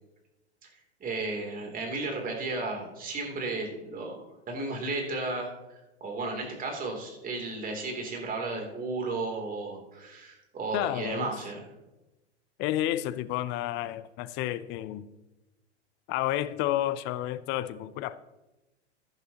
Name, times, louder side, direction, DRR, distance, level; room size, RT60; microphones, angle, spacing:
voice 1, 1.0-5.5 6.0-11.6, right 3 dB, 25° right, 3.0 m, -34 dB
voice 2, 10.7-11.3 12.6-15.1 16.1-18.2, left 13 dB, 30° left, 0.5 m, -30 dB
15.0 x 11.0 x 2.9 m
hypercardioid pair, 105°, 34 cm